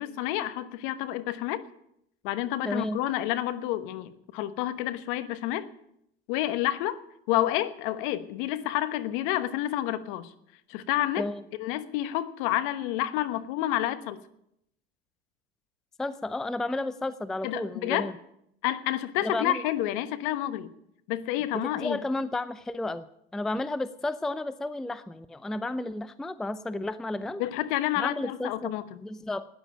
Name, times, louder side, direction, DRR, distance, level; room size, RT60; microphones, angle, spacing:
voice 1, 0.0-1.6 2.2-5.7 6.3-7.0 7.3-10.3 10.7-11.2 11.6-14.2 17.4-18.1 18.6-20.7 21.1-22.0 27.4-28.8, left 14 dB, 60° left, 12 dB, 1.2 m, -29 dB
voice 2, 2.7-3.0 11.2-11.4 16.0-18.1 19.2-19.6 21.5-23.1 23.3-27.4 28.0-28.7 29.0-29.5, left 2 dB, ahead, 14 dB, 0.5 m, -32 dB
12.5 x 9.9 x 8.8 m, 0.77 s
hypercardioid pair, 100°, 30 cm